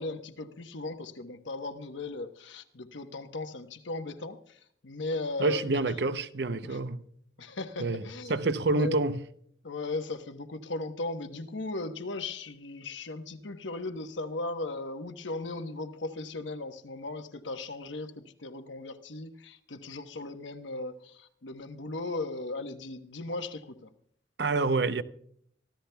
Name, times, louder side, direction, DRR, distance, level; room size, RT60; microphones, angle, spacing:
voice 1, 0.0-6.0 6.6-6.8 7.4-8.4 8.7-9.0 9.6-23.9, left 2 dB, 85° left, 1.1 m, -37 dB
voice 2, 5.4-7.0 7.8-8.0 8.3-9.2 24.4-25.0, right 3 dB, 70° right, 0.7 m, -27 dB
24.5 x 14.5 x 2.3 m
head